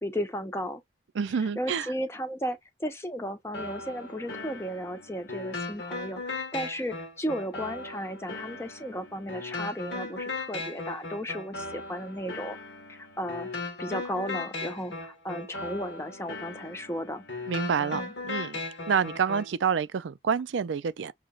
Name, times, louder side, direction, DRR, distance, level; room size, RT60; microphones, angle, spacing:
voice 1, 0.0-0.8 1.6-12.6 12.9-13.5 13.8-17.2 17.9-18.1, equal, 15° left, 0.8 m, -34 dB
voice 2, 1.1-1.9 17.5-18.6 18.9-21.1, right 6 dB, 85° right, 0.4 m, -28 dB
sound 1, 3.5-19.5, left 3 dB, 75° left, 1.3 m, -38 dB
6.3 x 2.9 x 2.4 m
head